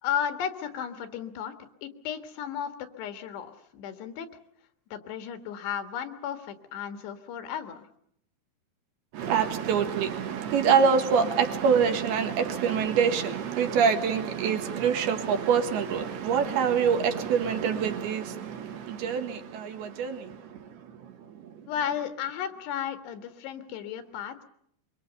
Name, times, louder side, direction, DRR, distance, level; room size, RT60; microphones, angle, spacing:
voice 1, 0.0-1.6 1.8-4.3 4.9-7.9 21.7-24.4, left 9 dB, 90° left, 3.7 m, -34 dB
voice 2, 9.1-21.7, right 6 dB, 75° right, 3.4 m, -26 dB
24.5 x 23.5 x 6.8 m
omnidirectional pair, 4.7 m